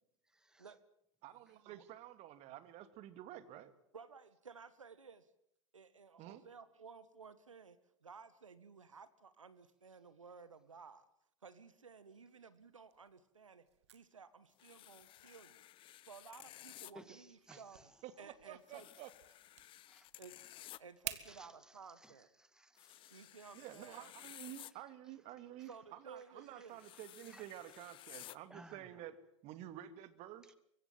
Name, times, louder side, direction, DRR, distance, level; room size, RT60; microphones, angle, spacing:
voice 1, 0.3-0.7 16.9-17.9 19.9-20.1 21.2-23.3 25.6-25.7 26.5-26.7 26.9-27.0 27.3-27.5 28.5-29.0, right 1 dB, 5° right, 12 dB, 2.0 m, -60 dB
voice 2, 1.2-3.7 6.2-6.4 17.5-17.6 18.0-19.1 23.5-29.1 29.4-30.5, right 12 dB, 40° right, 12 dB, 2.4 m, -51 dB
voice 3, 3.9-5.3 5.7-11.0 11.4-13.7 13.9-15.6 16.0-17.9 18.2-18.9 20.2-20.4 20.8-22.3 23.1-24.1 25.7-26.8, right 5 dB, 80° right, 15 dB, 1.5 m, -56 dB
sound 1, 12.6-21.3, right 13 dB, 60° right, 2.1 m, -54 dB
sound 2, 14.6-16.9 18.7-20.8 22.8-24.7 26.7-28.4, left 14 dB, 35° left, 0.9 m, -55 dB
24.5 x 23.5 x 7.7 m, 0.75 s
figure-of-eight pair, 90°, 16 cm